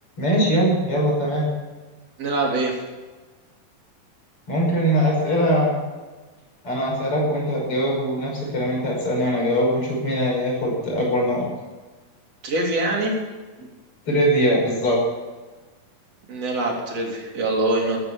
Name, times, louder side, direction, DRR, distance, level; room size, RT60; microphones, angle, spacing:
voice 1, 0.2-1.5 4.5-5.8 6.6-11.4 14.0-15.0, equal, 35° left, -2 dB, 6.6 m, -21 dB
voice 2, 2.2-2.8 12.4-13.1 16.3-18.0, right 2 dB, 45° right, -1 dB, 4.5 m, -23 dB
13.5 x 13.5 x 7.3 m, 1.3 s
omnidirectional pair, 4.2 m